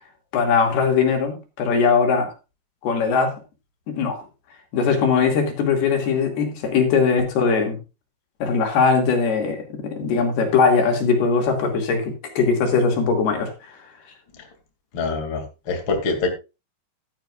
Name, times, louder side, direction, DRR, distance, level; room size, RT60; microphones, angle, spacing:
voice 1, 0.3-2.3 2.8-3.3 3.9-4.2 4.7-7.8 8.4-13.7, left 5 dB, 75° left, 2 dB, 4.3 m, -20 dB
voice 2, 14.9-16.3, left 3 dB, 35° left, 3 dB, 2.8 m, -25 dB
14.5 x 12.0 x 2.5 m, 0.29 s
omnidirectional pair, 4.5 m